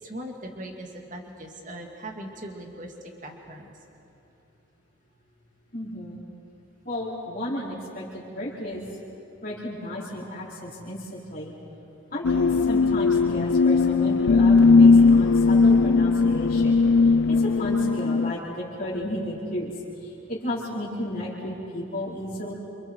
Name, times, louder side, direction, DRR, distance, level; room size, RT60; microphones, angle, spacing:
voice 1, 0.0-2.9 3.2-3.7, right 1 dB, 40° right, 2 dB, 2.2 m, -39 dB
voice 2, 5.7-6.2 6.8-8.9 9.4-11.5 12.1-16.8 17.3-19.7 20.0-22.5, left 1 dB, 40° left, -8 dB, 4.6 m, -33 dB
sound 1, 12.2-18.3, left 4 dB, 65° left, 0.4 m, -18 dB
28.5 x 27.5 x 4.6 m, 2.8 s
head